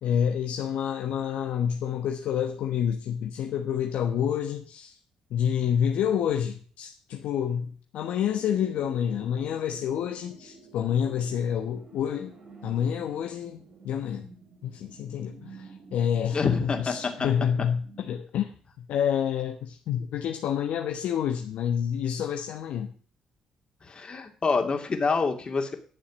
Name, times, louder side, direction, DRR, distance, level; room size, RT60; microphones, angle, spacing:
voice 1, 0.0-4.9 5.3-12.3 12.6-14.3 14.6-18.5 18.9-22.9, left 8 dB, 70° left, 1.1 m, -28 dB
sound 1, 8.0-18.2, right 4 dB, 55° right, 5.0 m, -50 dB
voice 2, 16.3-16.9 23.8-25.7, left 4 dB, 40° left, 2.7 m, -27 dB
12.0 x 7.2 x 6.2 m
hypercardioid pair, 45°, 2 cm